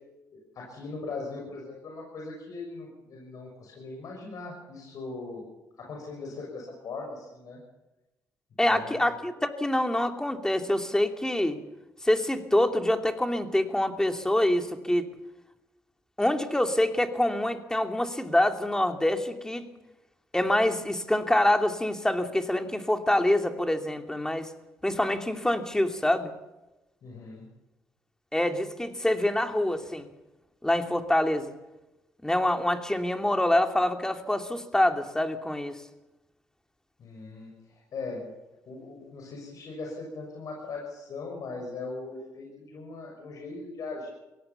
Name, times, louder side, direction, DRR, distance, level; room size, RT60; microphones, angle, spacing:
voice 1, 0.3-5.4 5.8-7.6 8.7-9.1 27.0-27.5 37.0-38.3 38.7-44.1, left 3 dB, 65° left, 0 dB, 6.5 m, -39 dB
voice 2, 8.6-11.6 12.0-15.1 16.2-19.7 20.3-24.5 24.8-26.3 28.3-30.1 30.6-31.5 32.2-35.7, left 1 dB, 10° left, 5 dB, 2.8 m, -26 dB
23.0 x 18.0 x 7.2 m, 1.0 s
supercardioid pair, 60°, 7 cm